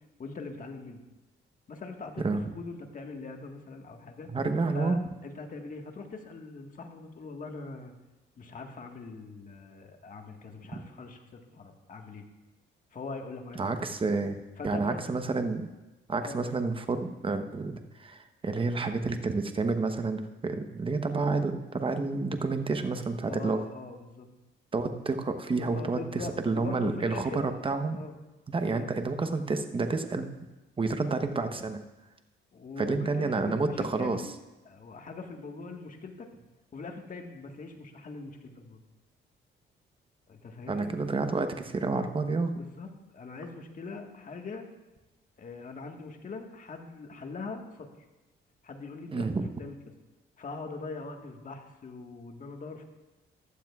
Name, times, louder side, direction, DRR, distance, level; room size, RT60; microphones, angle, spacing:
voice 1, 0.2-1.0 1.7-4.3 4.7-7.9 8.4-12.3 12.9-13.9 14.6-15.1 16.2-16.5 23.2-24.3 25.6-27.5 27.9-28.2 28.6-28.9 32.5-34.3 34.6-36.3 36.7-38.8 40.3-40.9 42.6-44.7 45.4-47.9 48.6-49.3 49.6-49.8 50.4-52.8, left 3 dB, 45° left, 3 dB, 1.5 m, -42 dB
voice 2, 2.2-2.5 4.3-5.0 13.6-14.4 14.6-15.7 16.1-23.6 24.7-28.0 28.5-30.3 30.8-31.8 32.8-34.2 40.7-42.5 49.1-49.4, right 3 dB, 25° right, 7 dB, 0.9 m, -29 dB
15.0 x 11.5 x 2.4 m, 1.0 s
cardioid pair, 90°, 20 cm